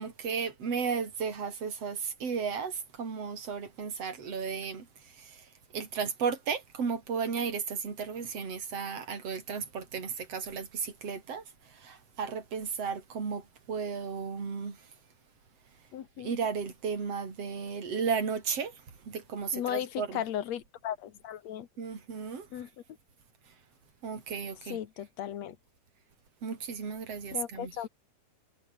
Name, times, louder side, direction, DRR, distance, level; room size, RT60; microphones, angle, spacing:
voice 1, 0.0-4.9 5.2-5.4 5.7-11.4 11.7-14.8 16.2-18.7 19.1-20.2 21.8-22.5 24.0-24.8 26.4-27.7, right 6 dB, 40° right, 5.1 m, -34 dB
voice 2, 15.9-16.3 19.5-21.7 22.5-22.7 24.7-25.6 27.3-27.9, left 10 dB, 55° left, 2.2 m, -36 dB
omnidirectional pair, 4.7 m